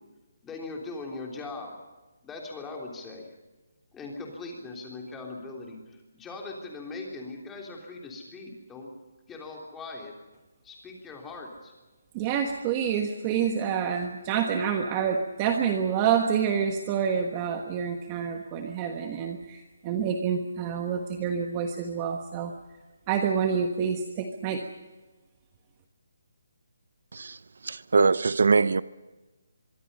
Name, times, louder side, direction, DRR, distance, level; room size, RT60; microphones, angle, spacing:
voice 1, 0.4-1.7 2.2-3.3 3.9-8.9 9.3-10.2 10.6-11.7, left 3 dB, 5° left, 3.4 m, -40 dB
voice 2, 12.1-22.5 23.1-24.6, right 7 dB, 15° right, 1.3 m, -27 dB
voice 3, 27.1-28.8, right 4 dB, 65° right, 0.7 m, -23 dB
24.5 x 24.0 x 5.5 m
hypercardioid pair, 175°, 0 cm